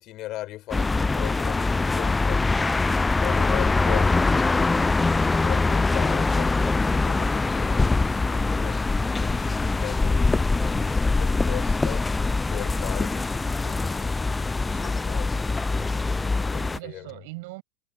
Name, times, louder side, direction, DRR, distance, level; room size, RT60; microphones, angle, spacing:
voice 1, 0.0-2.7 3.2-8.8 9.2-12.1 12.5-14.3 14.6-15.9 16.5-17.1, left 16 dB, 35° left, 5.1 m, -38 dB
sound 1, 0.7-16.8, left 3 dB, 10° left, 0.5 m, -23 dB
voice 2, 15.8-17.6, right 24 dB, 50° right, 7.7 m, -42 dB
figure-of-eight pair, 90°, 0 cm